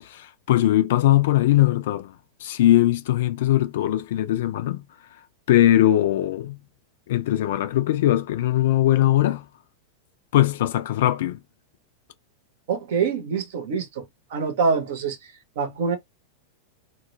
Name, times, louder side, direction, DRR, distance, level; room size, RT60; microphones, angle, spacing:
voice 1, 0.0-2.1 2.4-4.9 5.5-6.6 7.1-9.5 10.3-11.4, left 13 dB, 55° left, 0.4 m, -20 dB
voice 2, 12.7-16.0, right 5 dB, 55° right, 0.8 m, -26 dB
2.2 x 2.1 x 3.0 m
figure-of-eight pair, 90°, 0 cm